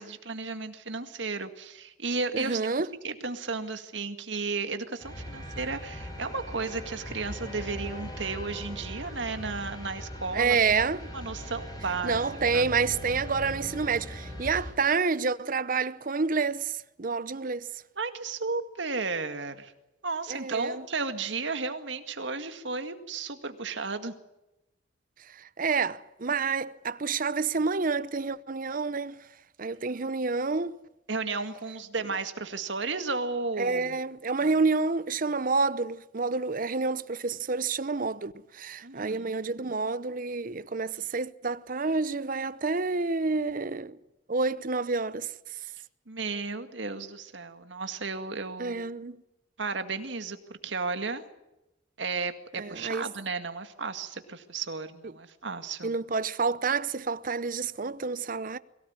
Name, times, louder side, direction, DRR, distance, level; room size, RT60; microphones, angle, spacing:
voice 1, 0.0-2.6 3.0-10.9 11.1-12.2 12.5-12.7 18.0-19.7 20.0-24.1 31.1-34.0 38.8-39.4 46.1-48.8 49.6-51.2 52.0-55.9, right 4 dB, 70° right, 2.0 m, -34 dB
voice 2, 2.3-2.9 10.3-11.1 12.0-17.7 20.3-20.8 25.6-29.2 29.6-30.8 33.6-44.0 44.3-45.3 48.6-49.2 52.6-53.0 55.8-58.6, right 4 dB, 45° right, 0.8 m, -28 dB
sound 1, 5.0-14.7, equal, 20° left, 5.9 m, -40 dB
22.5 x 17.5 x 9.7 m
head